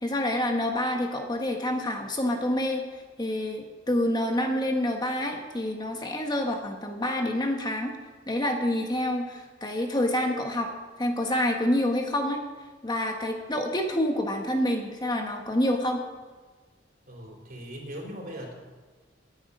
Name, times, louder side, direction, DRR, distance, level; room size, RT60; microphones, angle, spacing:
voice 1, 0.0-2.8 3.2-7.9 8.3-10.7 11.0-12.4 12.8-16.0, left 1 dB, 25° left, 3 dB, 1.3 m, -27 dB
voice 2, 17.1-18.5, equal, 50° right, -1 dB, 3.9 m, -39 dB
19.5 x 9.5 x 5.4 m, 1.4 s
head